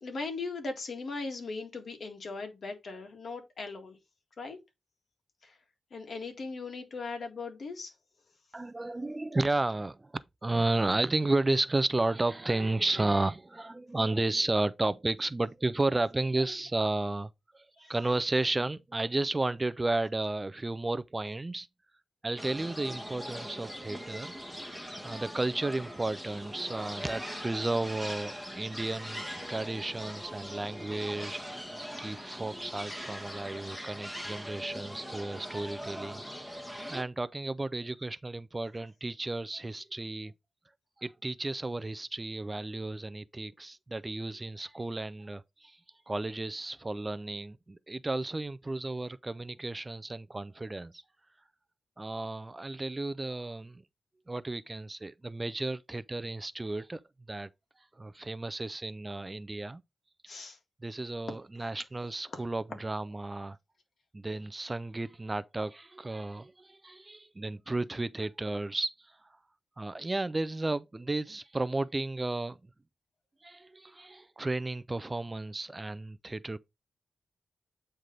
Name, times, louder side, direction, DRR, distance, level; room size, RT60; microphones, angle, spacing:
voice 1, 0.0-4.0 4.4-4.6 5.4-5.5 5.9-7.9 60.3-60.6, left 3 dB, 60° left, 1.8 m, -38 dB
voice 2, 8.5-21.7 22.2-31.7 32.0-40.3 41.0-45.8 46.1-51.0 52.0-53.8 54.3-57.0 57.3-57.5 58.0-59.8 60.8-63.6 64.1-69.2 69.8-72.6 73.4-76.6, right 2 dB, 20° right, 0.3 m, -33 dB
sound 1, 22.4-37.0, equal, ahead, 1.2 m, -41 dB
8.8 x 3.3 x 3.9 m
cardioid pair, 90°, 0 cm